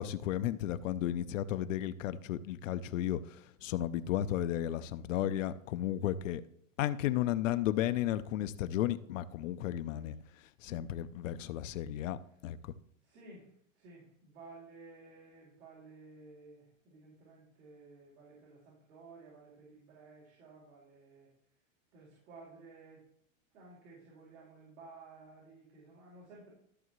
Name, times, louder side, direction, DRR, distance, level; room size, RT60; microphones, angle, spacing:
voice 1, 0.0-6.4 6.8-10.2 10.6-12.2 12.4-12.7, left 12 dB, 70° left, 0.6 m, -34 dB
voice 2, 13.0-21.3 21.9-23.0 23.5-26.5, right 3 dB, 80° right, 3.9 m, -55 dB
13.5 x 6.9 x 3.1 m
supercardioid pair, 175°, 41 cm